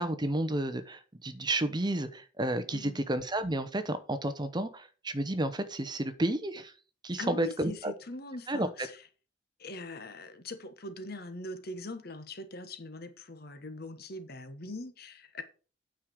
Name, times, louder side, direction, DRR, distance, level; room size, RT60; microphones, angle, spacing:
voice 1, 0.0-6.7 7.0-7.9 8.5-8.7, right 1 dB, 25° right, 0.9 m, -31 dB
voice 2, 2.7-3.0 7.2-9.0 9.6-15.4, left 2 dB, 55° left, 1.3 m, -42 dB
9.1 x 5.0 x 6.3 m
head